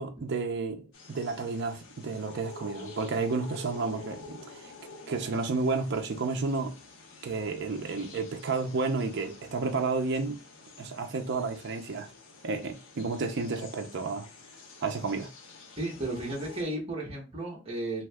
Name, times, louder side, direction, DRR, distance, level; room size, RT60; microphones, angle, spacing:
voice 1, 0.0-4.7 5.1-6.7 7.2-10.4 10.8-12.1 12.4-14.3 14.8-15.3, right 4 dB, 50° right, 0.4 m, -31 dB
sound 1, 0.9-16.6, left 3 dB, 60° left, 0.6 m, -49 dB
voice 2, 15.8-18.1, right 1 dB, 25° right, 0.9 m, -34 dB
2.7 x 2.3 x 3.3 m
head